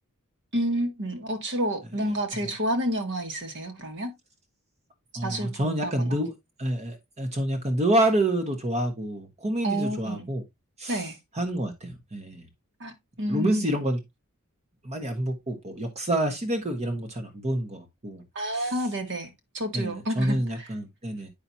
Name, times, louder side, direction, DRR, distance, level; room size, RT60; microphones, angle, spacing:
voice 1, 0.5-4.1 5.2-6.2 9.6-10.3 10.9-11.2 12.8-13.8 18.3-20.7, equal, 55° right, 1.7 m, -30 dB
voice 2, 5.1-6.3 6.6-10.4 10.8-11.0 11.3-12.4 13.3-14.0 14.8-18.2 19.7-21.3, right 1 dB, 30° right, 1.3 m, -27 dB
8.8 x 5.9 x 2.7 m
head